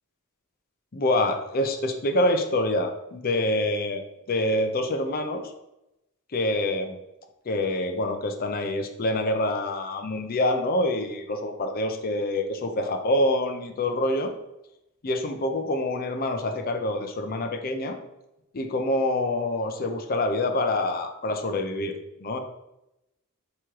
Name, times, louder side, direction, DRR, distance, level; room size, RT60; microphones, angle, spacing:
voice 1, 0.9-4.0 4.3-5.5 6.3-7.0 7.5-14.3 15.0-18.0 18.5-21.9 22.2-22.4, left 1 dB, 45° left, 6 dB, 0.5 m, -26 dB
3.6 x 3.0 x 4.6 m, 0.91 s
head